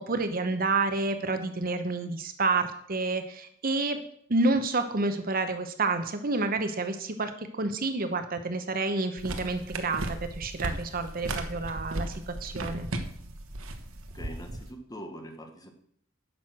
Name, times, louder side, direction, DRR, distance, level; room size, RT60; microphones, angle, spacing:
voice 1, 0.0-4.0 4.3-12.9, right 3 dB, 45° right, 9 dB, 0.9 m, -29 dB
sound 1, 9.2-14.7, right 1 dB, 80° right, 1.2 m, -36 dB
voice 2, 14.1-15.7, equal, 20° left, 5 dB, 1.2 m, -43 dB
10.5 x 6.4 x 6.0 m, 0.66 s
head